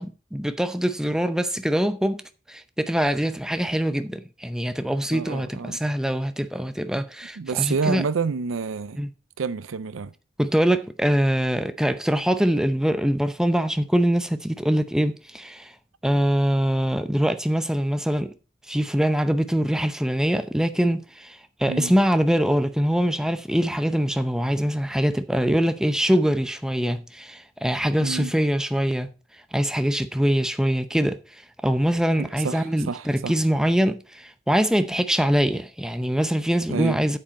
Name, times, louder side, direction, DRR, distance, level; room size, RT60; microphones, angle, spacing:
voice 1, 0.0-2.2 2.5-8.0 9.0-9.1 10.4-15.7 16.0-18.3 18.7-29.1 29.5-37.2, equal, 5° right, 0.6 m, -23 dB
voice 2, 5.1-5.8 7.4-9.0 9.4-10.1 21.7-21.9 28.0-28.3 32.2-33.4 36.7-37.0, right 5 dB, 90° right, 0.5 m, -28 dB
9.0 x 7.6 x 4.3 m
head